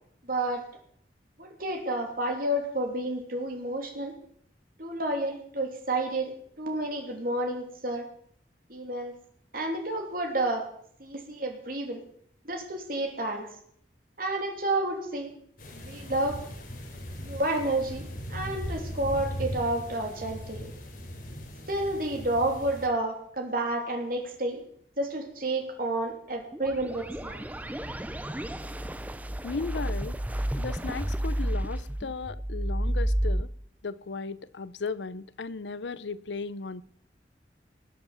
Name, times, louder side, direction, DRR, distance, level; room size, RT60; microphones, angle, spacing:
voice 1, 0.3-0.6 1.4-4.1 4.8-8.1 8.7-9.1 9.5-10.7 11.0-12.0 12.4-13.5 14.2-15.3 15.7-16.4 17.2-20.7 21.7-24.6 25.0-27.4, right 1 dB, 50° right, 3.0 m, -30 dB
sound 1, 15.6-22.9, equal, 55° left, 3.5 m, -39 dB
sound 2, 26.5-33.4, right 1 dB, 10° right, 0.5 m, -31 dB
voice 2, 29.4-30.2 30.6-33.5 33.8-36.8, left 4 dB, 85° left, 0.7 m, -36 dB
19.5 x 8.0 x 7.2 m
head